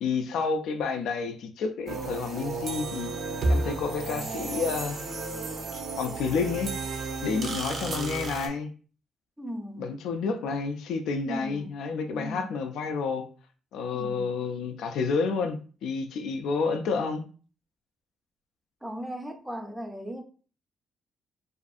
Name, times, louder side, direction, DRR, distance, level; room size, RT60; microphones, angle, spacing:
voice 1, 0.0-3.1 3.5-5.0 5.7-6.7 7.2-8.7 9.8-13.3 13.7-17.3, left 5 dB, 80° left, 0.3 m, -30 dB
sound 1, 1.9-8.5, right 3 dB, 60° right, 0.6 m, -32 dB
voice 2, 9.4-9.9 11.3-11.7 12.1-12.5 14.0-14.3 18.8-20.2, equal, 10° right, 0.4 m, -37 dB
2.5 x 2.5 x 2.3 m
cardioid pair, 90°, 0 cm